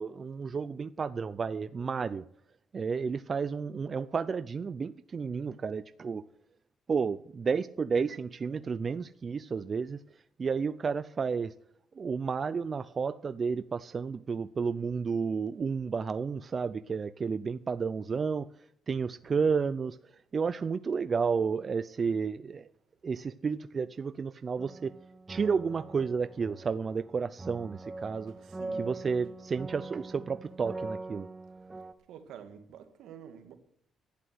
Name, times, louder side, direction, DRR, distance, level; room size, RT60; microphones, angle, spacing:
voice 1, 0.0-2.3 2.7-6.2 6.9-10.0 10.4-11.5 11.9-18.5 18.9-22.7 23.0-24.9 25.3-28.3 28.7-31.3, right 5 dB, 40° right, 0.5 m, -31 dB
sound 1, 24.6-31.9, right 2 dB, 20° right, 1.0 m, -43 dB
voice 2, 28.3-28.9 32.1-33.5, right 8 dB, 80° right, 1.8 m, -48 dB
11.5 x 9.8 x 7.8 m
cardioid pair, 90°, 0 cm